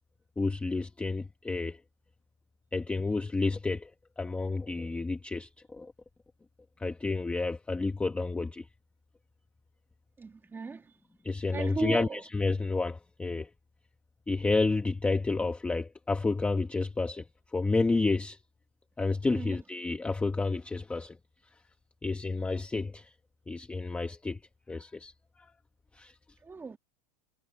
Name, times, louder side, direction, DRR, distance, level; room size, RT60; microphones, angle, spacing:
voice 1, 0.4-1.8 2.7-3.9 4.2-5.9 6.8-8.7 11.2-13.5 14.3-17.2 17.5-18.4 19.0-21.2 22.0-23.1 23.5-24.4 24.7-25.1 25.9-26.2, left 3 dB, 5° left, 1.0 m, -30 dB
voice 2, 10.2-10.9 11.5-12.2 19.3-19.6 26.4-26.8, right 4 dB, 10° right, 2.2 m, -36 dB
supercardioid pair, 160°, 20 cm